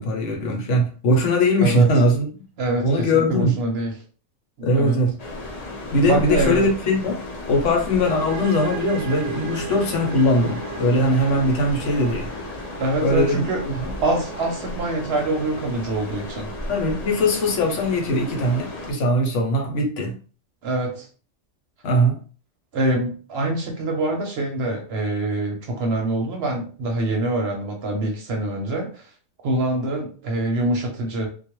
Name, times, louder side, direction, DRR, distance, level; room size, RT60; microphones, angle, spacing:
voice 1, 0.0-2.3 2.8-3.6 4.6-5.2 5.9-7.2 7.5-12.3 13.0-13.9 16.7-20.2 21.8-22.2, left 1 dB, 75° left, 1.0 m, -20 dB
voice 2, 2.6-3.9 4.7-5.0 6.1-6.7 12.8-13.6 14.0-16.5 20.6-21.1 22.7-29.0 29.4-31.3, right 2 dB, 60° right, 0.8 m, -25 dB
sound 1, 5.2-18.9, left 1 dB, 45° left, 0.6 m, -34 dB
sound 2, 8.0-15.7, right 5 dB, 90° right, 1.0 m, -37 dB
2.3 x 2.1 x 2.9 m
omnidirectional pair, 1.3 m